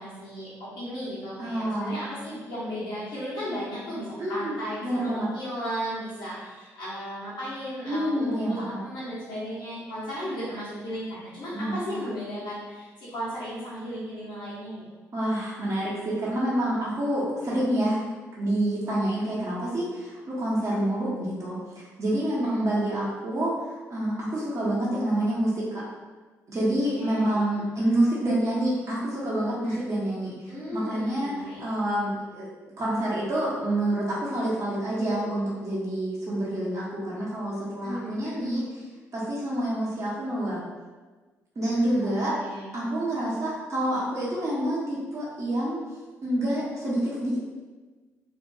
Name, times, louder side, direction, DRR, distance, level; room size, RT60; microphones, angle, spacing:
voice 1, 0.0-14.8 22.5-22.6 26.9-27.5 29.6-29.9 30.5-31.6 37.8-38.4 41.7-42.7, equal, 65° left, -10 dB, 1.1 m, -35 dB
voice 2, 1.4-2.0 4.2-4.5 4.8-5.3 7.9-8.8 11.5-11.9 15.1-18.0 18.3-25.8 26.5-30.3 30.7-32.5 32.8-38.8 39.1-40.6 41.6-42.3 42.7-45.8 46.2-47.4, right 1 dB, 40° right, -7 dB, 0.9 m, -27 dB
2.6 x 2.2 x 2.7 m, 1.3 s
hypercardioid pair, 45°, 8 cm